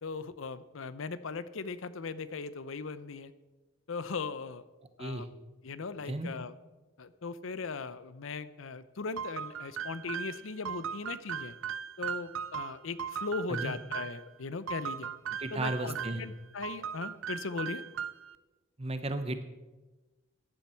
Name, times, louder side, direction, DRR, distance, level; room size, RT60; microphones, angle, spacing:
voice 1, 0.0-3.3 3.9-4.6 5.0-5.3 5.6-6.5 7.0-11.6 12.0-15.1 15.5-17.8, left 4 dB, 75° left, 14 dB, 0.6 m, -38 dB
sound 1, 9.2-14.2 14.7-16.3 16.6-18.3, right 8 dB, 75° right, 0.5 m, -38 dB
voice 2, 15.4-16.2 18.8-19.4, right 2 dB, 30° right, 9 dB, 0.9 m, -34 dB
14.5 x 10.5 x 4.4 m, 1.2 s
head